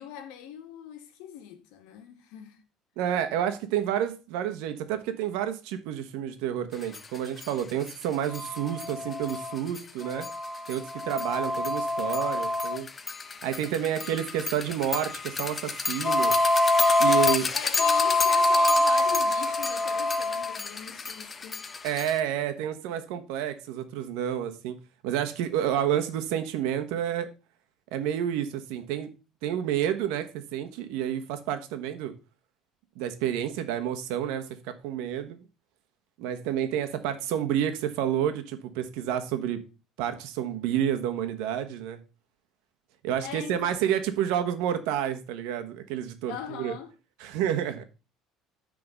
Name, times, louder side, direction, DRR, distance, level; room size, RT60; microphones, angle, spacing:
voice 1, 0.0-2.6 17.0-21.7 43.2-43.9 46.3-46.9, left 9 dB, 90° left, 1.4 m, -41 dB
voice 2, 3.0-10.3 10.7-12.9 13.4-16.3 17.0-17.5 21.8-24.8 25.0-27.3 27.9-29.1 29.4-32.1 33.0-35.4 36.2-39.6 40.0-42.0 43.0-46.7 47.2-47.8, right 10 dB, 85° right, 1.2 m, -29 dB
sound 1, 6.9-7.0 7.4-7.5 7.9-8.0 8.3-22.2, left 2 dB, 20° left, 0.5 m, -26 dB
9.8 x 3.8 x 5.3 m
cardioid pair, 160°, 0 cm